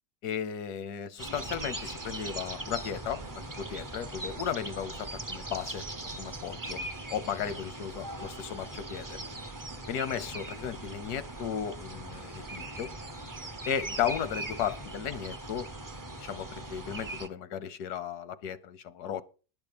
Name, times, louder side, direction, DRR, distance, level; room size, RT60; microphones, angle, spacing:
voice 1, 0.2-3.2 3.6-5.8 6.2-6.8 7.1-9.2 9.9-12.9 13.7-15.7 16.2-19.2, left 8 dB, 85° left, 1.3 m, -35 dB
sound 1, 1.2-17.3, right 2 dB, 30° right, 0.4 m, -40 dB
11.0 x 5.8 x 6.8 m
omnidirectional pair, 1.6 m